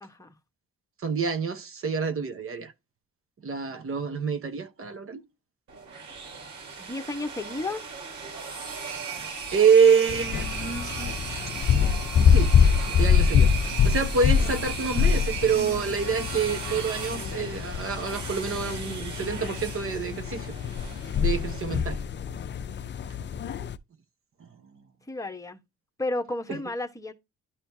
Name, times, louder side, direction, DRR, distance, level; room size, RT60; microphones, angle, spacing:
voice 1, 0.0-0.3 6.8-7.8 25.1-25.6 26.0-27.1, left 2 dB, 10° left, 1.2 m, -32 dB
voice 2, 1.0-2.7 3.4-5.2 9.2-11.4 12.3-12.5 12.9-13.5 13.8-20.5 21.2-22.0 24.4-24.5 26.5-26.6, right 6 dB, 45° right, 1.1 m, -26 dB
sound 1, 5.7-21.6, right 5 dB, 75° right, 3.6 m, -37 dB
sound 2, 10.1-23.8, left 7 dB, 40° left, 0.5 m, -25 dB
11.5 x 4.3 x 2.7 m
cardioid pair, 90°, 30 cm